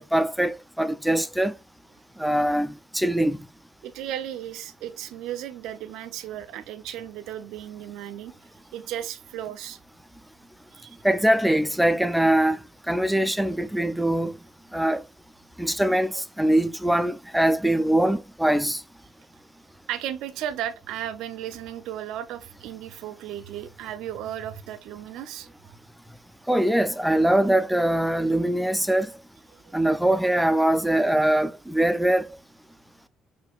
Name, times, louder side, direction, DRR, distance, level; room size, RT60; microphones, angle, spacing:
voice 1, 0.0-1.5 2.2-3.4 11.0-12.6 12.9-14.3 14.7-15.0 15.6-18.8 26.5-29.1 29.7-32.3, right 1 dB, 5° right, 0.3 m, -22 dB
voice 2, 3.8-8.3 8.7-9.8 10.7-11.0 19.9-25.8 29.5-29.8, right 11 dB, 85° right, 0.5 m, -35 dB
4.4 x 2.6 x 2.3 m
cardioid pair, 105°, 0 cm